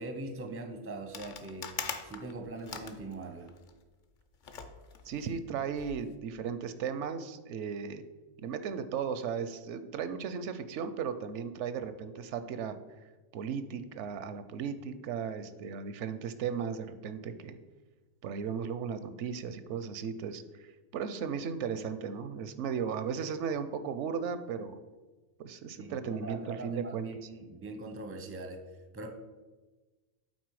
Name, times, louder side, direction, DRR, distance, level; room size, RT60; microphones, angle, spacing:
voice 1, 0.0-1.7 2.0-3.5 25.8-28.6 28.9-29.1, right 2 dB, 15° right, 5 dB, 0.5 m, -41 dB
sound 1, 1.1-3.8 4.4-6.1, left 6 dB, 50° left, 0.7 m, -42 dB
voice 2, 5.1-8.0 8.4-12.8 13.3-17.6 18.2-20.7 20.9-24.8 25.4-27.1, right 6 dB, 80° right, 11 dB, 0.9 m, -36 dB
8.2 x 4.3 x 4.7 m, 1.2 s
omnidirectional pair, 1.2 m